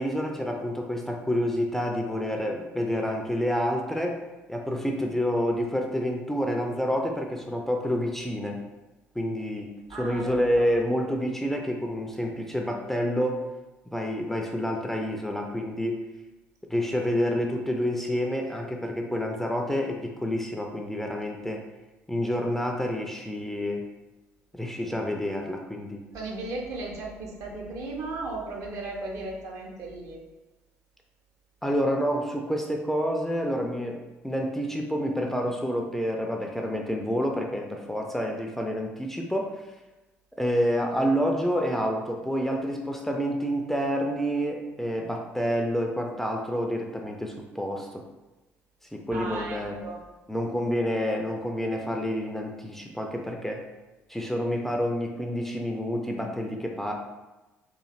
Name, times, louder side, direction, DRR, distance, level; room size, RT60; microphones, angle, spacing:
voice 1, 0.0-4.2 4.5-8.6 9.2-13.4 13.9-16.0 16.7-21.6 22.1-23.9 24.5-26.0 31.6-39.5 40.4-48.0 48.9-49.8 50.3-53.6 54.1-56.9, equal, 5° left, 1 dB, 0.4 m, -28 dB
voice 2, 9.9-10.6 26.1-30.2 49.1-50.0, right 2 dB, 55° right, -1 dB, 0.7 m, -36 dB
3.0 x 2.5 x 2.4 m, 1.1 s
hypercardioid pair, 50°, 7 cm